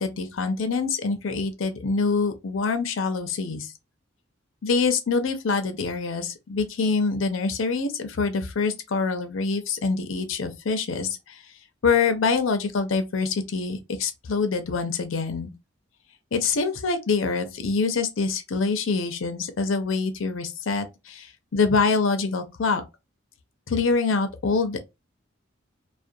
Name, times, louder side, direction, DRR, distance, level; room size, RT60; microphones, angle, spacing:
voice 1, 0.0-3.7 4.6-11.4 11.8-15.5 16.3-22.8 23.7-24.8, left 4 dB, 75° left, 0.6 m, -25 dB
2.4 x 2.2 x 2.6 m
head